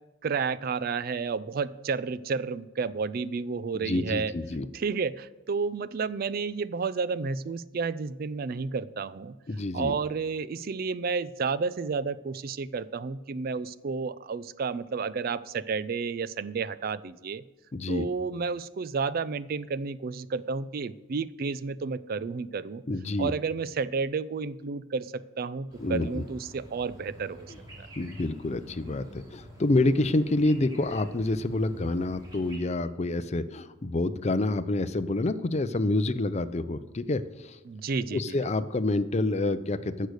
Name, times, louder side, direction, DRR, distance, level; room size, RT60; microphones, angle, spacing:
voice 1, 0.2-4.3 4.7-9.4 9.7-17.4 17.9-22.8 23.2-27.9 37.7-38.4, right 5 dB, 50° right, 16 dB, 0.4 m, -31 dB
voice 2, 3.7-4.7 9.5-10.0 17.7-18.1 22.9-23.3 25.8-26.2 28.0-37.6 38.1-40.1, left 2 dB, 35° left, 13 dB, 0.5 m, -28 dB
sound 1, 25.7-32.6, equal, 20° right, 2.7 m, -48 dB
14.5 x 6.5 x 6.4 m, 1.1 s
head